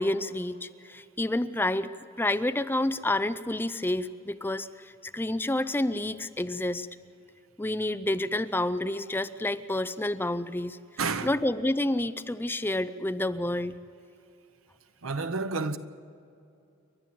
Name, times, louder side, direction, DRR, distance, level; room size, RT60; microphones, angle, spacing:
voice 1, 0.0-6.9 7.6-10.8 11.2-13.7, left 1 dB, 10° left, 0.5 m, -29 dB
voice 2, 11.0-11.3 15.0-15.8, right 4 dB, 85° right, 1.1 m, -30 dB
29.5 x 12.0 x 7.8 m
head